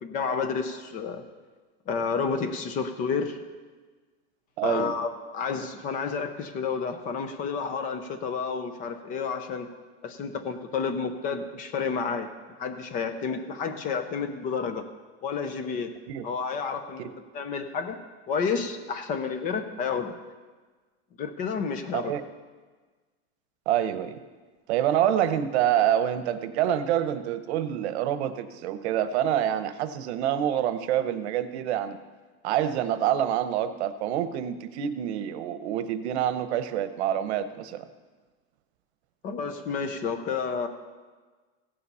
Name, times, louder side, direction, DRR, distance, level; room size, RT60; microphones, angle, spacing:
voice 1, 0.0-1.2 1.9-3.4 4.6-9.7 10.0-12.3 12.6-14.9 15.2-15.9 16.2-17.1 17.3-18.0 18.3-20.1 21.2-22.1 39.2-40.7, left 5 dB, 25° left, 8 dB, 0.6 m, -30 dB
voice 2, 4.6-4.9 16.1-16.3 17.0-17.1 21.9-22.2 23.7-24.2 24.7-32.0 32.4-37.8, right 10 dB, 80° right, 11 dB, 0.9 m, -27 dB
16.0 x 7.0 x 5.5 m, 1.4 s
supercardioid pair, 175°, 33 cm